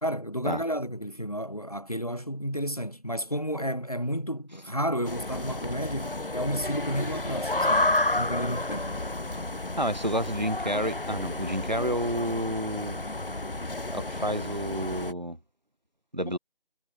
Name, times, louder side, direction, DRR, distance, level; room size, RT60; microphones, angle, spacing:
voice 1, 0.0-9.0 16.3-16.4, equal, 40° left, 2.1 m, -32 dB
sound 1, 5.0-15.1, left 2 dB, 65° left, 1.1 m, -31 dB
voice 2, 9.8-13.0 13.9-15.4 16.1-16.4, equal, 45° right, 3.1 m, -30 dB
figure-of-eight pair, 180°, 30 cm